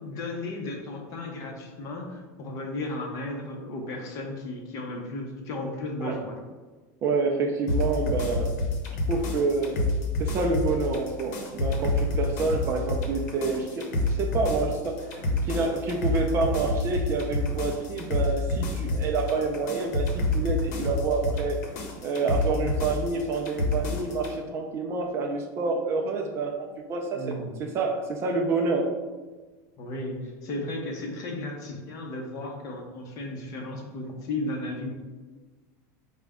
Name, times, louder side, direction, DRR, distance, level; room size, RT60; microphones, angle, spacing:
voice 1, 0.0-6.3 12.6-12.7 27.1-27.7 29.8-34.9, left 2 dB, 40° left, 1 dB, 0.7 m, -34 dB
voice 2, 7.0-8.5 9.1-9.8 10.2-15.0 15.4-21.6 22.0-27.3 27.6-28.9, right 4 dB, 30° right, 3 dB, 0.3 m, -28 dB
sound 1, 7.7-24.3, left 2 dB, 80° left, 0.8 m, -28 dB
4.8 x 2.2 x 3.5 m, 1.3 s
supercardioid pair, 165°, 9 cm